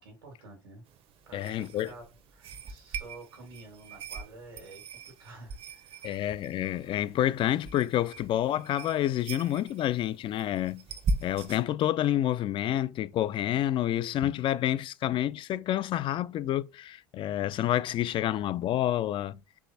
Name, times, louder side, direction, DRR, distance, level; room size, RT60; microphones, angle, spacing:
voice 1, 0.0-0.8 1.3-2.0 2.3-6.2, right 2 dB, 85° right, 1.5 m, -49 dB
sound 1, 0.9-11.6, right 3 dB, 50° right, 0.7 m, -40 dB
voice 2, 1.3-1.9 6.0-10.8 11.2-19.4, left 12 dB, 45° left, 0.4 m, -28 dB
4.7 x 3.2 x 2.6 m
hypercardioid pair, 65°, 12 cm